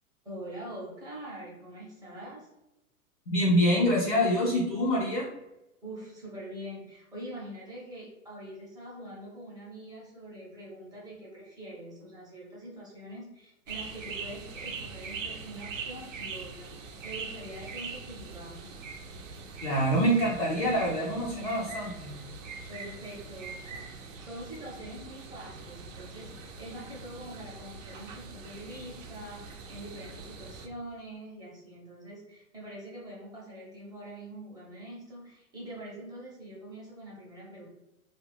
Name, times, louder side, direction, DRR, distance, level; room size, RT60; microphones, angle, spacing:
voice 1, 0.2-2.5 5.8-18.8 22.7-37.7, right 1 dB, 10° right, -5 dB, 0.7 m, -44 dB
voice 2, 3.3-5.3 19.6-22.1, equal, 30° left, -5 dB, 0.4 m, -25 dB
sound 1, 13.7-30.7, right 4 dB, 60° right, 0.6 m, -42 dB
2.4 x 2.2 x 3.3 m, 0.95 s
hypercardioid pair, 120°, 44 cm